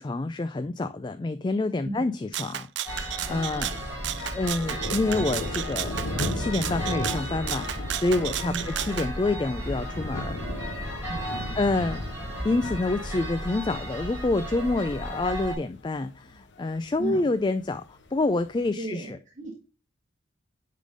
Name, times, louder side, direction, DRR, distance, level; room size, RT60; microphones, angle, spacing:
voice 1, 0.0-2.7 3.0-3.7 4.2-10.4 11.5-12.0 12.4-19.2, left 2 dB, 25° left, 0.3 m, -28 dB
voice 2, 1.8-2.1 3.2-3.7 8.5-8.9 11.1-11.8 17.0-17.3 18.8-19.5, right 2 dB, 40° right, 1.6 m, -36 dB
Rattle (instrument), 2.3-9.1, right 12 dB, 70° right, 0.4 m, -33 dB
sound 1, 2.9-15.6, equal, 15° right, 3.4 m, -34 dB
Thunder, 3.1-18.7, left 2 dB, 70° left, 1.0 m, -38 dB
10.0 x 3.8 x 4.9 m
head